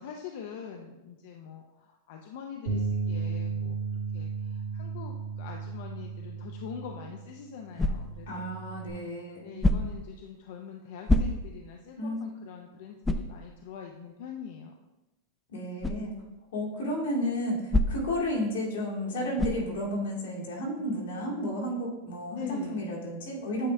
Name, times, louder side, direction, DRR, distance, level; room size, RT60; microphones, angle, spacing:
voice 1, 0.0-3.8 4.1-8.5 9.4-14.7 22.3-23.0, left 7 dB, 65° left, 2 dB, 0.6 m, -43 dB
Bass guitar, 2.7-8.9, right 5 dB, 85° right, 1.7 m, -35 dB
sound 1, 7.8-8.3 9.6-10.1 11.1-11.7 12.2-12.3 13.0-13.4 15.8-16.1 17.7-18.2 19.4-19.7, left 1 dB, 5° left, 0.3 m, -26 dB
voice 2, 8.3-9.5 12.0-12.2 15.5-16.1 16.5-23.7, equal, 90° left, -3 dB, 2.2 m, -32 dB
8.5 x 3.6 x 3.3 m, 1.0 s
supercardioid pair, 145°, 0 cm